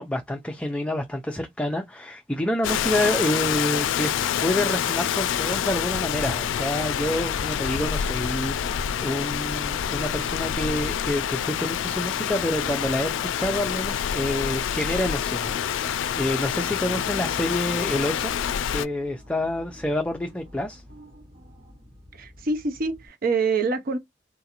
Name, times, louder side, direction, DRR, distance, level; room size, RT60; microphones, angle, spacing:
voice 1, 0.0-18.3 18.7-20.8, left 1 dB, 5° left, 0.4 m, -28 dB
Rain, 2.6-18.8, left 9 dB, 85° left, 0.3 m, -27 dB
sound 1, 4.7-23.1, equal, 70° right, 2.4 m, -49 dB
voice 2, 22.1-24.0, right 4 dB, 50° right, 0.6 m, -25 dB
3.7 x 2.5 x 2.8 m
head